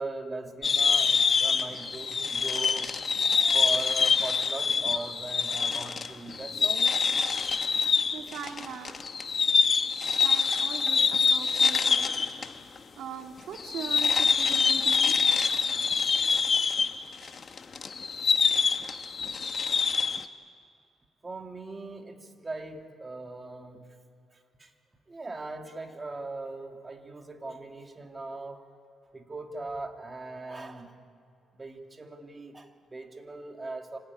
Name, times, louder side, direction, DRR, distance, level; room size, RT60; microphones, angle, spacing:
voice 1, 0.0-7.0 21.2-23.8 24.6-24.7 25.1-28.8 29.1-30.9 31.5-34.0, right 2 dB, 25° right, 4 dB, 2.6 m, -40 dB
sound 1, 0.6-12.5 12.8-12.9 13.6-20.2, left 5 dB, 45° left, 1.2 m, -25 dB
voice 2, 8.1-9.0 10.2-12.6 13.0-15.2, right 6 dB, 75° right, 3 dB, 2.1 m, -41 dB
25.5 x 17.5 x 9.8 m, 2.4 s
cardioid pair, 90°, 0 cm